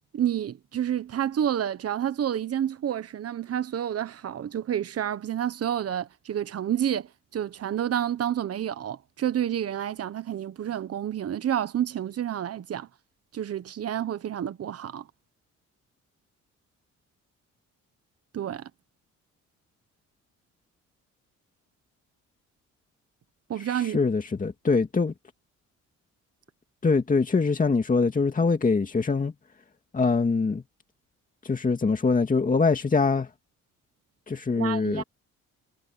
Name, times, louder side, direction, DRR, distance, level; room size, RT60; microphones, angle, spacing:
voice 1, 0.1-12.9 13.3-15.0 18.3-18.7 23.5-24.0 34.6-35.0, right 10 dB, 50° right, 1.2 m, -29 dB
voice 2, 23.6-25.1 26.8-29.3 29.9-30.6 31.4-33.3 34.3-35.0, left 4 dB, 25° left, 2.2 m, -23 dB
cardioid pair, 90°, 30 cm